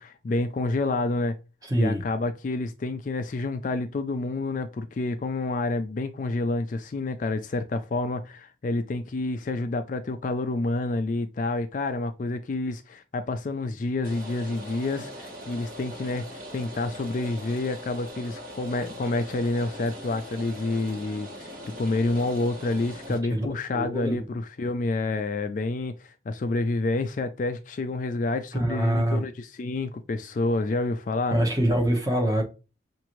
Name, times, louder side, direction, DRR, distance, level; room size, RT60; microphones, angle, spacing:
voice 1, 0.0-1.4 1.8-21.5 21.8-31.4, left 2 dB, 45° left, 0.3 m, -28 dB
voice 2, 1.7-2.0 23.3-23.5 23.7-24.2 28.5-29.2 31.3-32.4, right 1 dB, 20° right, 1.0 m, -24 dB
Rain, 14.0-23.2, equal, 45° right, 1.7 m, -41 dB
5.8 x 2.6 x 3.0 m
head